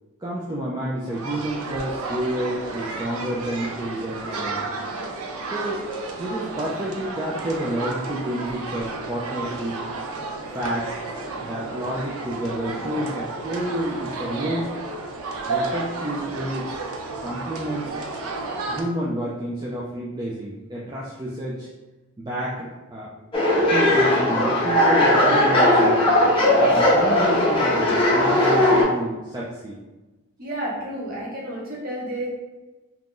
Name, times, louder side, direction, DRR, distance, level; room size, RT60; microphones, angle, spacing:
voice 1, 0.2-4.7 5.5-5.8 6.2-9.8 10.5-11.0 11.4-14.7 15.5-16.8 17.2-18.3 18.7-21.7 22.2-23.2 23.7-26.1 26.6-29.8, right 1 dB, 20° right, -6 dB, 0.3 m, -29 dB
sound 1, 1.0-18.8, right 3 dB, 75° right, 0.5 m, -32 dB
sound 2, 23.3-28.8, left 1 dB, 25° left, 0.6 m, -18 dB
voice 2, 30.4-32.3, right 1 dB, 40° right, -5 dB, 0.9 m, -31 dB
2.9 x 2.5 x 3.6 m, 1.2 s
head